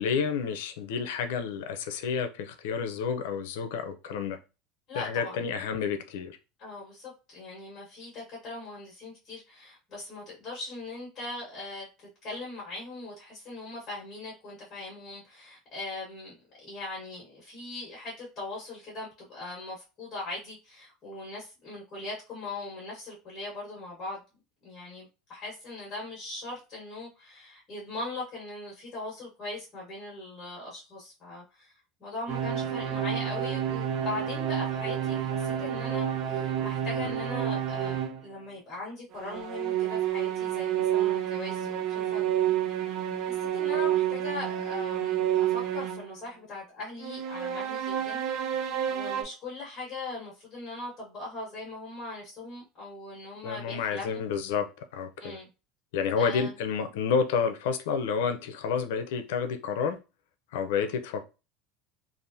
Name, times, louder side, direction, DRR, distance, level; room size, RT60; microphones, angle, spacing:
voice 1, 0.0-4.4 5.0-6.4 37.0-37.1 53.4-54.7 54.9-55.4 55.9-60.0 60.5-61.2, left 6 dB, 80° left, 0.6 m, -30 dB
voice 2, 4.9-5.4 6.6-24.2 24.6-31.7 32.0-42.2 43.2-48.2 48.5-54.1 55.2-55.5 56.1-56.5, left 2 dB, 25° left, 1.3 m, -40 dB
sound 1, 32.3-38.2 39.2-46.2 47.0-49.2, right 10 dB, 35° right, 0.5 m, -29 dB
3.4 x 2.5 x 2.6 m
cardioid pair, 175°, 0 cm